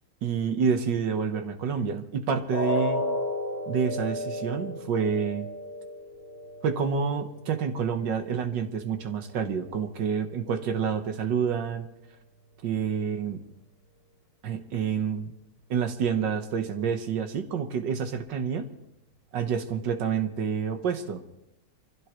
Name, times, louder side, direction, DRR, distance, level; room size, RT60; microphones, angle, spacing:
voice 1, 0.2-3.0 3.7-5.5 6.6-11.9 12.6-13.4 14.4-15.3 15.7-18.7 19.3-21.2, right 6 dB, 80° right, 6 dB, 1.9 m, -28 dB
sound 1, 2.5-8.5 8.9-9.1 9.5-9.6, left 1 dB, 75° left, 2.7 m, -33 dB
25.0 x 16.0 x 3.1 m, 0.88 s
omnidirectional pair, 1.9 m